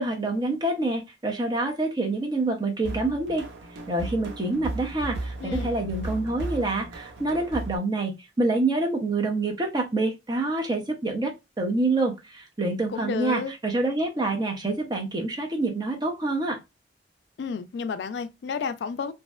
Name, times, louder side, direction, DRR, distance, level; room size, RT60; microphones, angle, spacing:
voice 1, 0.0-3.5 3.9-16.6, right 2 dB, 25° right, 0.6 m, -27 dB
sound 1, 2.8-7.8, right 2 dB, 85° right, 0.5 m, -35 dB
voice 2, 5.4-5.8 12.9-13.5 17.4-19.1, left 5 dB, 65° left, 0.3 m, -31 dB
2.6 x 2.1 x 2.2 m
head